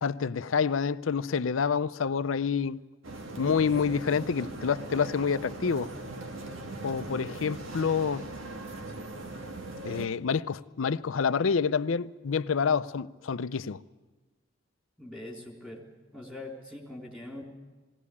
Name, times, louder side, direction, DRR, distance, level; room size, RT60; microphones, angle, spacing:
voice 1, 0.0-2.8 3.4-5.9 6.8-8.3 9.8-13.8, left 6 dB, 90° left, 0.5 m, -28 dB
sound 1, 3.0-10.1, right 2 dB, 85° right, 1.8 m, -40 dB
voice 2, 15.0-15.9 16.1-17.4, left 1 dB, 5° right, 3.8 m, -42 dB
21.0 x 17.5 x 8.5 m
head